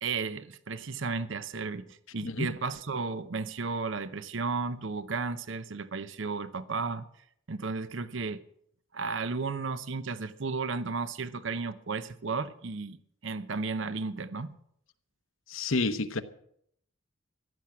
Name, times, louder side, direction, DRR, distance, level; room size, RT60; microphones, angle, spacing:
voice 1, 0.0-7.1 7.5-8.4 8.9-14.6, right 4 dB, 60° right, 0.7 m, -34 dB
voice 2, 15.5-16.2, left 3 dB, 70° left, 1.0 m, -29 dB
15.5 x 12.0 x 6.1 m
head